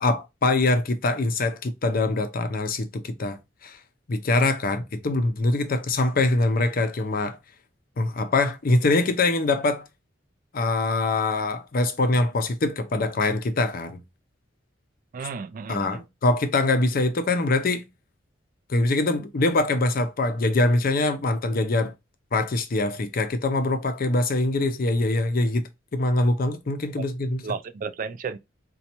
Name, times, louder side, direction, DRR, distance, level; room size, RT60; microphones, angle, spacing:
voice 1, 0.0-3.8 4.1-7.4 8.0-9.8 10.5-14.0 15.7-17.9 18.7-21.9 22.3-25.6 25.9-27.4, left 2 dB, 50° left, 0.5 m, -23 dB
voice 2, 15.1-16.0 27.4-28.4, right 5 dB, 45° right, 0.3 m, -33 dB
4.1 x 2.2 x 2.9 m
head